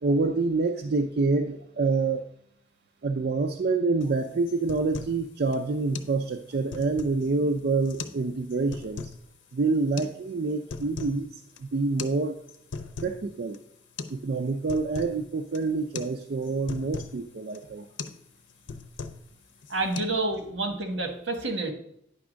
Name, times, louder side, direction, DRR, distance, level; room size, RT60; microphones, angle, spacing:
voice 1, 0.0-2.3 3.0-9.1 9.5-12.4 13.0-13.6 14.1-17.9, right 3 dB, 55° right, 5 dB, 0.4 m, -27 dB
sound 1, 4.0-4.2 4.5-5.2 5.5-5.6 5.9-6.1 6.5-7.3 7.9-8.2 8.5-9.2 10.0-10.1 10.5-11.2 11.5-11.6 12.0-12.2 12.5-13.2 13.5-13.6 14.0-14.2 14.5-15.2 15.5-15.7 16.0-16.1 16.4-17.2 17.5-17.7 18.0-18.2 18.5-19.3 19.6-20.0, left 4 dB, 80° left, 0.7 m, -38 dB
voice 2, 19.7-21.7, right 2 dB, 80° right, 5 dB, 1.3 m, -29 dB
9.6 x 3.5 x 6.2 m, 0.73 s
head